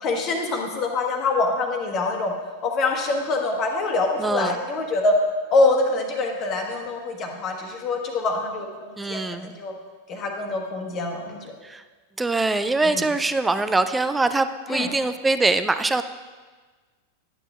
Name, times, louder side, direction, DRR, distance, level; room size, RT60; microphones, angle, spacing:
voice 1, 0.0-2.3 2.6-5.1 5.5-9.7 10.1-11.5 12.8-13.0 14.7-14.9, left 3 dB, 35° left, 2 dB, 1.3 m, -25 dB
voice 2, 4.2-4.6 9.0-9.5 11.6-11.8 12.2-16.0, right 3 dB, 10° right, 11 dB, 0.4 m, -23 dB
11.5 x 8.7 x 2.4 m, 1.4 s
figure-of-eight pair, 90°, 0 cm